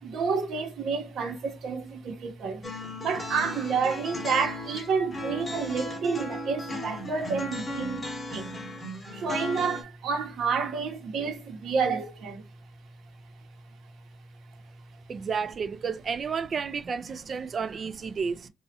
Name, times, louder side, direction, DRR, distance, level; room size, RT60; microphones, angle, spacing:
voice 1, 0.0-2.7 3.0-8.6 9.1-12.4, right 5 dB, 70° right, 0.9 m, -29 dB
sound 1, 2.6-9.8, left 1 dB, 25° left, 0.9 m, -36 dB
voice 2, 15.1-18.5, right 5 dB, 45° right, 0.3 m, -31 dB
2.9 x 2.3 x 2.8 m
cardioid pair, 90°, 0 cm